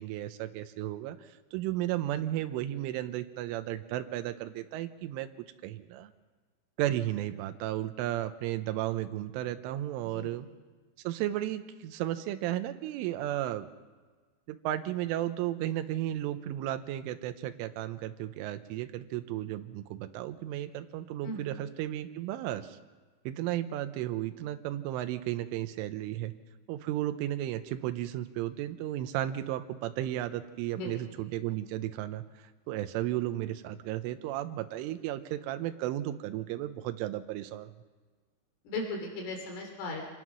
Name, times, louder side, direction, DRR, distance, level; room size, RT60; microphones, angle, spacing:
voice 1, 0.0-5.3 5.6-6.1 6.8-10.5 11.0-13.7 14.5-22.8 23.3-26.3 26.7-32.2 32.7-37.7, right 13 dB, 85° right, 9 dB, 3.4 m, -34 dB
voice 2, 38.7-40.0, left 2 dB, 85° left, 2 dB, 6.1 m, -37 dB
26.5 x 19.5 x 6.2 m, 1.4 s
omnidirectional pair, 5.6 m